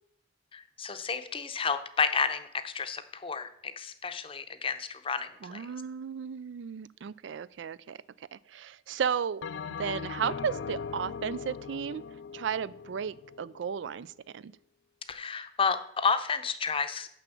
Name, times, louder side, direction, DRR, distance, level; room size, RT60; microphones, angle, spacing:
voice 1, 0.5-3.5 3.8-5.6 15.1-17.1, left 5 dB, 30° left, 10 dB, 0.6 m, -31 dB
voice 2, 5.4-8.0 8.3-12.0 12.3-14.5, right 7 dB, 80° right, 19 dB, 0.4 m, -34 dB
Bell, 9.4-14.0, left 6 dB, 80° left, 0.4 m, -40 dB
6.9 x 6.0 x 6.9 m, 0.71 s
head